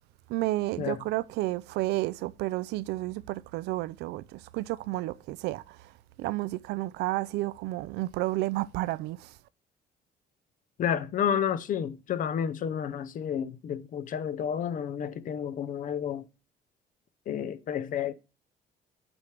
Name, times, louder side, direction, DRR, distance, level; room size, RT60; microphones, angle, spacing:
voice 1, 0.3-5.6 6.2-9.2, right 18 dB, 85° right, 0.4 m, -31 dB
voice 2, 10.8-16.3 17.3-18.1, left 8 dB, 50° left, 0.6 m, -30 dB
8.7 x 3.3 x 5.7 m
cardioid pair, 110°, 17 cm